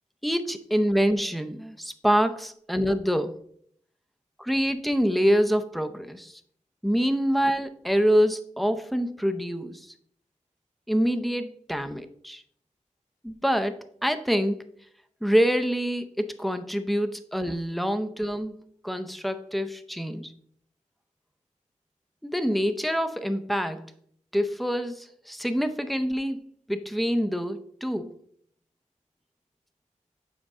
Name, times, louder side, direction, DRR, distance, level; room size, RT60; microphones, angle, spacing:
voice 1, 0.2-3.4 4.4-6.4 6.8-9.9 10.9-12.4 13.2-14.6 15.2-20.3 22.2-23.8 24.3-26.4 26.7-28.1, equal, ahead, 9 dB, 0.6 m, -26 dB
7.4 x 5.2 x 3.6 m, 0.64 s
wide cardioid pair, 85°, 13 cm